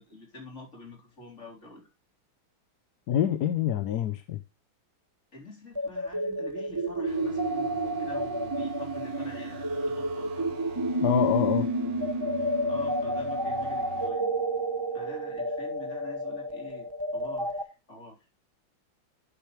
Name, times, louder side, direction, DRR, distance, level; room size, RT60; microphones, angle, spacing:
voice 1, 0.0-1.9 5.3-10.7 12.6-14.3 14.9-16.9 17.1-18.2, left 2 dB, 35° left, 4.3 m, -46 dB
voice 2, 3.1-4.4 11.0-11.7, left 10 dB, 65° left, 1.1 m, -26 dB
sound 1, 5.7-17.6, right 1 dB, 20° right, 0.6 m, -30 dB
sound 2, 7.1-14.1, right 6 dB, 65° right, 2.2 m, -46 dB
11.5 x 6.8 x 3.2 m
omnidirectional pair, 2.2 m